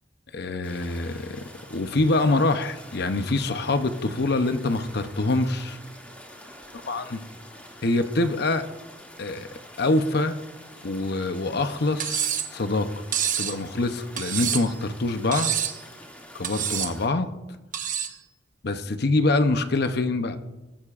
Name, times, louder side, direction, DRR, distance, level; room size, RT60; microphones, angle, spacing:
voice 1, 0.3-5.8 6.8-7.2 7.8-8.6 9.2-10.4 10.8-12.9 13.4-15.5 16.3-17.3 18.6-20.4, left 2 dB, 60° left, 9 dB, 0.8 m, -25 dB
sound 1, 0.6-17.1, equal, 10° left, 2.3 m, -46 dB
Cutlery silverware, 12.0-12.5 13.1-13.6 14.2-14.8 15.3-15.8 16.4-16.9 17.7-18.2, right 9 dB, 45° right, 1.0 m, -27 dB
20.5 x 13.0 x 2.5 m, 1.1 s
head